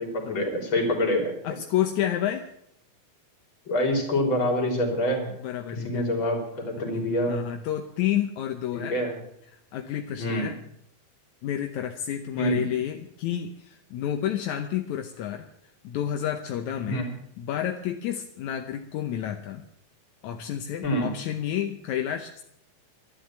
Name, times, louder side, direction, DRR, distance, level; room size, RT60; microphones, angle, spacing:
voice 1, 0.0-1.4 3.7-5.3 5.8-7.4 8.7-9.2 10.2-10.5 12.4-12.6 16.8-17.1 20.8-21.1, left 1 dB, 35° left, 3 dB, 3.6 m, -26 dB
voice 2, 1.4-2.5 5.4-6.1 7.3-9.0 9.7-10.5 11.4-15.5 15.8-17.0 17.4-19.6 20.2-22.4, left 11 dB, 70° left, 5 dB, 1.9 m, -30 dB
12.0 x 11.5 x 8.6 m, 0.74 s
omnidirectional pair, 4.3 m